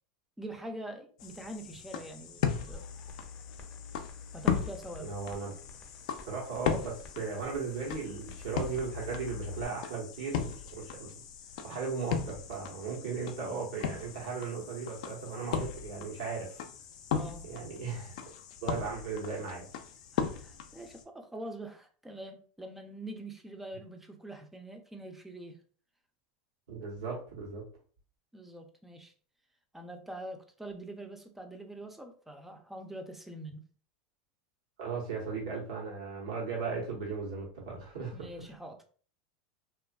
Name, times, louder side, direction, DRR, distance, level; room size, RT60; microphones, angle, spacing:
voice 1, 0.4-2.4 2.7-2.9 4.3-5.1 17.1-17.5 20.1-25.6 28.3-29.1 29.7-33.6 38.1-38.8, right 1 dB, 5° right, 4 dB, 0.4 m, -44 dB
sound 1, 1.2-21.0, left 7 dB, 70° left, 0.4 m, -38 dB
sound 2, 2.7-9.6, left 5 dB, 30° left, 0.6 m, -47 dB
voice 2, 5.0-5.5 6.3-11.1 11.6-16.6 17.4-18.2 18.6-19.7 26.7-27.6 34.8-38.3, right 5 dB, 80° right, -2 dB, 1.0 m, -37 dB
2.5 x 2.3 x 2.2 m, 0.43 s
supercardioid pair, 110°, 4 cm